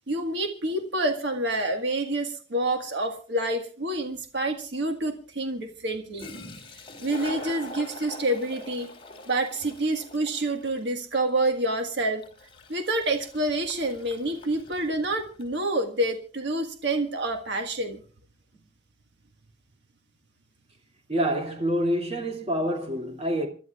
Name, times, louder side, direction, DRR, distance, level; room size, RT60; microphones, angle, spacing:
voice 1, 0.1-6.3 7.0-8.9 9.3-12.2 12.7-18.0, right 1 dB, 65° right, 1.6 m, -28 dB
Toilet flush, 4.1-4.2 5.9-6.0 6.2-15.6, left 2 dB, 30° left, 3.6 m, -43 dB
voice 2, 21.1-23.5, equal, 35° right, 2.5 m, -27 dB
27.5 x 12.0 x 2.4 m
head